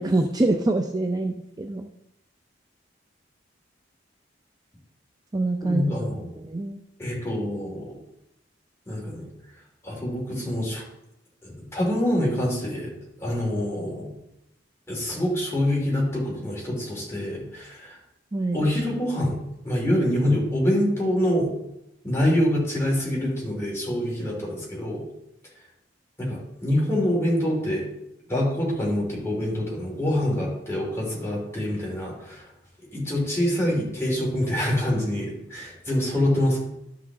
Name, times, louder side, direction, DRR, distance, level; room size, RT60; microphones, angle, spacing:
voice 1, 0.0-1.9 5.3-5.9 6.4-6.8 18.3-18.7, right 2 dB, 20° right, 4 dB, 0.5 m, -25 dB
voice 2, 5.6-6.3 7.0-7.9 8.9-9.3 9.8-10.8 11.4-12.9 13.2-14.1 14.9-18.0 18.5-19.4 19.6-21.5 22.0-25.1 26.2-27.9 28.3-32.4 32.9-36.6, left 1 dB, 15° left, -4 dB, 3.3 m, -25 dB
12.5 x 5.9 x 3.7 m, 0.84 s
head